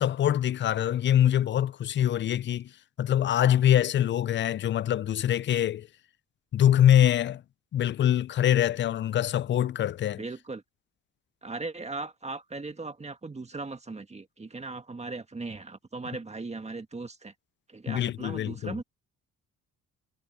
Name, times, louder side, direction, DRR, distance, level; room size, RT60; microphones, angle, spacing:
voice 1, 0.0-2.7 3.0-5.9 6.5-7.4 7.7-10.2 17.9-18.7, left 11 dB, 40° left, 0.4 m, -24 dB
voice 2, 10.2-10.6 11.4-17.3 17.7-18.8, right 3 dB, 20° right, 1.9 m, -38 dB
cardioid pair, 90°, 30 cm